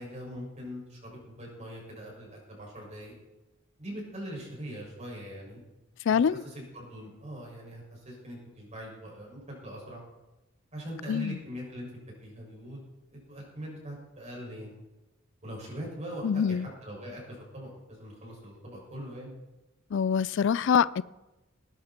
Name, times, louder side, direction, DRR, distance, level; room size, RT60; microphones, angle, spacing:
voice 1, 0.0-3.1 3.8-5.6 6.1-10.0 10.7-11.9 12.2-12.8 13.1-14.7 15.4-19.3, equal, 35° right, 6.3 m, -42 dB
voice 2, 6.1-6.4 11.1-11.4 16.2-16.7 19.9-21.0, left 7 dB, 65° left, 0.4 m, -25 dB
19.0 x 11.5 x 4.4 m
head